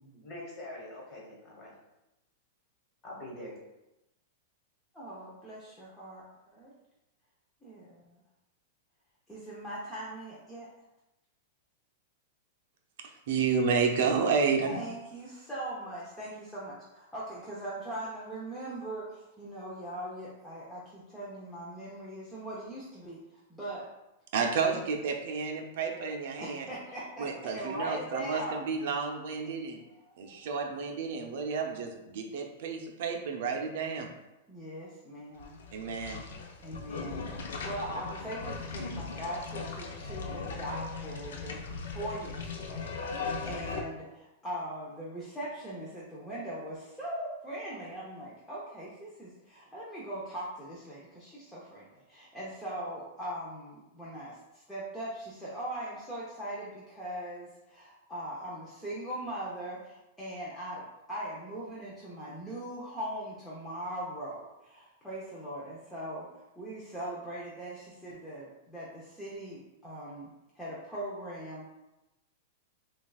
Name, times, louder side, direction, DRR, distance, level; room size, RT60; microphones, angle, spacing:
voice 1, 0.2-1.7 3.0-3.6, left 1 dB, 30° left, -3 dB, 1.4 m, -44 dB
voice 2, 4.9-6.2 6.5-6.7 7.6-8.2 9.3-10.7 14.7-23.9 26.4-28.6 29.9-30.4 34.5-35.5 36.6-42.9 43.4-70.3 70.6-71.6, right 1 dB, 5° left, -8 dB, 0.7 m, -40 dB
voice 3, 13.0-14.8 24.3-26.7 27.2-29.8 30.2-34.1 35.7-36.2, right 5 dB, 65° right, 3 dB, 0.5 m, -31 dB
sound 1, 35.4-43.8, left 4 dB, 90° left, 0.5 m, -38 dB
5.8 x 2.3 x 2.3 m, 0.95 s
supercardioid pair, 145°, 0 cm